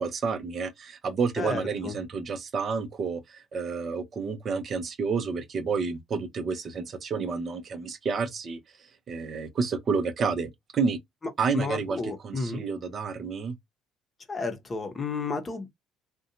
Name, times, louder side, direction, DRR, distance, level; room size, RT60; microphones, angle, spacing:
voice 1, 0.0-11.0 11.4-13.6, right 5 dB, 45° right, 0.6 m, -30 dB
voice 2, 1.4-1.9 11.5-12.6 14.3-15.7, left 4 dB, 30° left, 0.7 m, -32 dB
2.5 x 2.2 x 2.6 m
hypercardioid pair, 60°, 0 cm